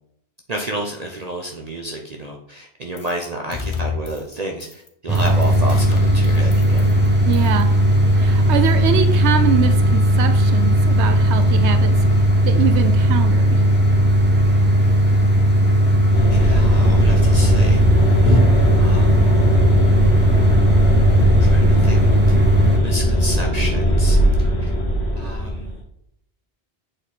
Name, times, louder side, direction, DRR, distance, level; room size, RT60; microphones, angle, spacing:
voice 1, 0.5-6.9 16.3-17.8 18.2-18.4 18.8-19.2 21.4-22.0 22.7-24.7 25.1-25.7, right 1 dB, 40° right, 1 dB, 0.8 m, -30 dB
sound 1, 3.0-3.2 3.5-4.3 4.6-4.9 5.1-7.1 7.3-7.6, left 5 dB, 30° left, 0.9 m, -31 dB
sound 2, 5.1-22.8, equal, 10° right, 1.0 m, -16 dB
voice 2, 7.2-7.7 8.2-11.9 12.4-13.6, right 8 dB, 90° right, 8 dB, 0.9 m, -23 dB
sound 3, 16.1-25.8, equal, 75° left, 1.6 m, -19 dB
8.0 x 4.2 x 4.2 m, 0.74 s
omnidirectional pair, 1.1 m